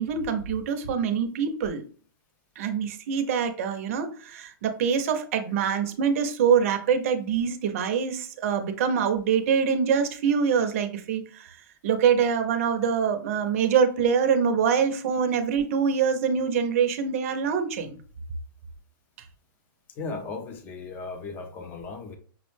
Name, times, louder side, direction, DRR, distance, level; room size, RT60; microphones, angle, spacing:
voice 1, 0.0-1.8 2.6-11.6 11.8-18.0, right 7 dB, 40° right, 7 dB, 0.5 m, -24 dB
voice 2, 20.0-22.2, left 4 dB, 15° left, 6 dB, 0.4 m, -36 dB
5.7 x 2.1 x 3.2 m, 0.43 s
hypercardioid pair, 170°, 12 cm